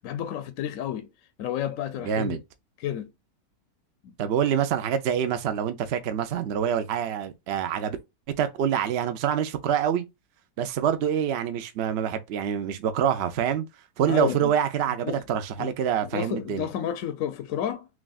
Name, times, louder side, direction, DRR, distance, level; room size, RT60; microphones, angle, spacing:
voice 1, 0.0-1.1 1.4-2.4 2.8-3.1 4.0-4.1 14.1-14.5 15.0-15.2 15.6-15.7 16.0-17.9, left 10 dB, 70° left, 0.9 m, -31 dB
voice 2, 2.0-2.4 4.2-8.0 8.4-10.0 10.6-13.6 14.0-16.7, right 8 dB, 70° right, 0.6 m, -26 dB
6.1 x 2.3 x 2.3 m
omnidirectional pair, 1.7 m